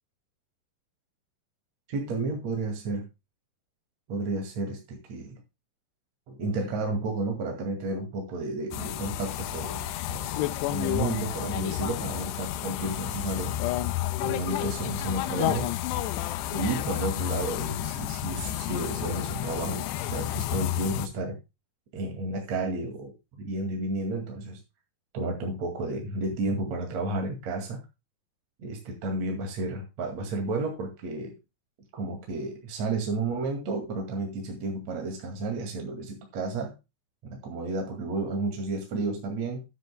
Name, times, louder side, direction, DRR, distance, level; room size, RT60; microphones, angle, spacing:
voice 1, 1.9-3.1 4.1-5.4 6.3-13.5 14.2-15.7 16.5-21.4 21.9-23.1 23.4-24.6 25.1-27.8 28.6-31.4 31.9-36.7 37.2-39.6, right 2 dB, 45° right, 2 dB, 2.5 m, -32 dB
sound 1, 8.7-21.1, left 13 dB, 85° left, 2.5 m, -31 dB
14.0 x 10.0 x 2.2 m, 0.26 s
omnidirectional pair, 5.6 m